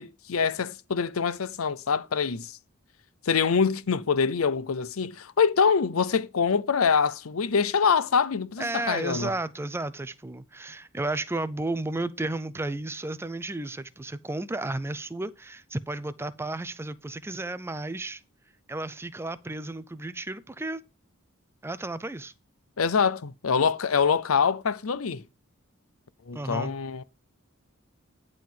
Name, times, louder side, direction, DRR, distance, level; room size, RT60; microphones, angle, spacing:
voice 1, 0.0-2.5 3.3-9.3 22.8-25.2 26.3-27.0, left 6 dB, 80° left, 0.6 m, -25 dB
voice 2, 8.6-18.2 18.7-20.8 21.6-22.3 26.3-26.7, right 2 dB, 10° right, 0.5 m, -33 dB
10.5 x 3.8 x 7.4 m
head